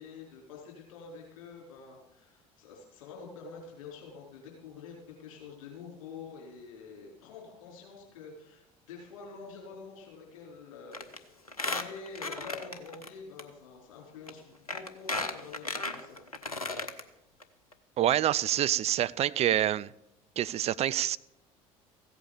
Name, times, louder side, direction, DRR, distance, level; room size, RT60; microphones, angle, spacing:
voice 1, 0.0-16.5, left 5 dB, 65° left, 4.5 m, -47 dB
Squeak, 10.9-11.2 11.5-13.1 13.4-13.5 14.3-14.4 14.7-17.0 17.4-17.5 17.7-17.8, left 2 dB, 85° left, 0.8 m, -35 dB
voice 2, 18.0-19.9 20.4-21.2, right 12 dB, 35° right, 0.5 m, -26 dB
15.5 x 8.5 x 6.9 m
figure-of-eight pair, 60°, 18 cm